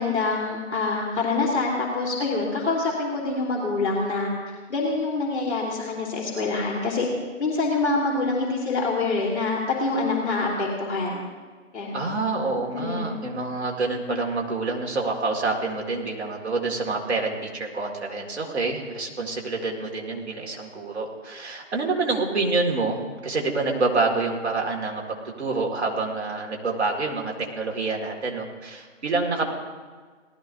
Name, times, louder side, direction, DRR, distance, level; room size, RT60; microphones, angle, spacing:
voice 1, 0.0-4.3 4.7-7.0 7.4-11.2 11.7-12.0 12.7-13.1, left 3 dB, 55° left, -3 dB, 3.2 m, -25 dB
voice 2, 11.9-25.0 25.4-29.5, right 3 dB, 55° right, 1 dB, 2.3 m, -27 dB
18.5 x 13.5 x 2.8 m, 1.5 s
figure-of-eight pair, 155°, 39 cm